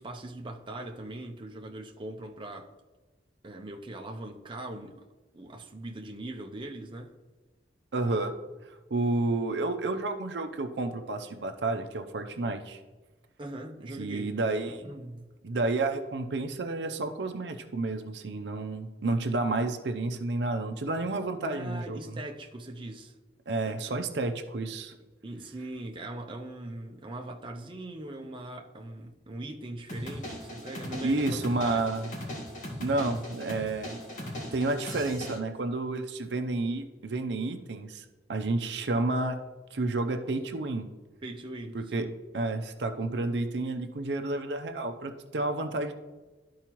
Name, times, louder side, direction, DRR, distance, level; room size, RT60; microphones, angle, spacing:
voice 1, 0.0-2.7 3.4-5.1 5.3-7.1 13.4-14.3 14.7-15.3 21.4-23.2 23.6-24.0 25.2-31.9 32.9-33.2 41.2-42.2, right 1 dB, 30° right, 1 dB, 0.6 m, -41 dB
voice 2, 7.9-8.3 8.9-12.8 14.0-14.8 15.4-22.0 23.5-24.9 31.0-32.1 32.8-34.0 34.5-39.4 39.7-40.9 41.7-42.1 42.3-45.9, right 2 dB, 70° right, 6 dB, 0.6 m, -30 dB
sound 1, 29.9-35.4, equal, 45° left, 1.7 m, -39 dB
12.5 x 4.6 x 3.0 m, 1.2 s
head